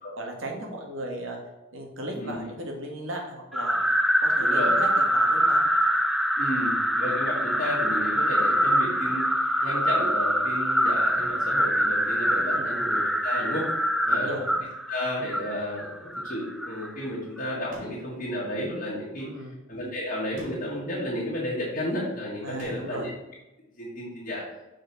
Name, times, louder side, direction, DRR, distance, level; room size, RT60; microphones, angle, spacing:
voice 1, 0.2-1.4 1.7-3.9 4.2-5.6 12.5-12.8 14.1-14.5 19.2-19.5 22.4-23.1, right 1 dB, 75° right, 1 dB, 1.7 m, -36 dB
sound 1, 3.5-16.9, equal, ahead, 0.3 m, -24 dB
voice 2, 4.4-4.8 6.4-13.7 14.0-14.4 14.9-19.3 19.7-23.1 23.8-24.4, left 1 dB, 45° left, -6 dB, 1.7 m, -32 dB
sound 2, 17.7-18.2 20.4-20.9 22.6-23.1, equal, 40° right, 1.9 m, -46 dB
6.3 x 4.4 x 5.8 m, 0.98 s
head